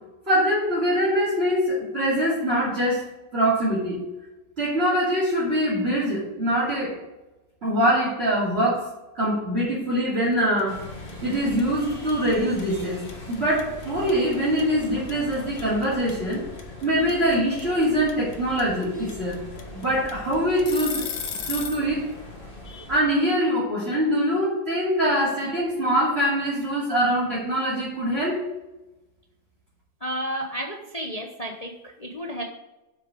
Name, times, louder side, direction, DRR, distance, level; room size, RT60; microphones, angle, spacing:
voice 1, 0.3-3.0 3.3-4.0 4.6-6.9 7.6-10.8 11.2-13.0 13.3-16.4 16.8-19.4 19.7-21.1 21.5-22.1 22.9-28.4, equal, 30° right, -8 dB, 2.8 m, -23 dB
sound 1, 10.6-10.8 11.1-21.9, left 6 dB, 85° left, 1.7 m, -34 dB
sound 2, 10.7-23.0, left 1 dB, 30° left, 2.0 m, -40 dB
voice 2, 30.0-32.4, right 1 dB, 45° left, 1 dB, 0.5 m, -32 dB
7.7 x 6.5 x 5.1 m, 1.0 s
omnidirectional pair, 2.1 m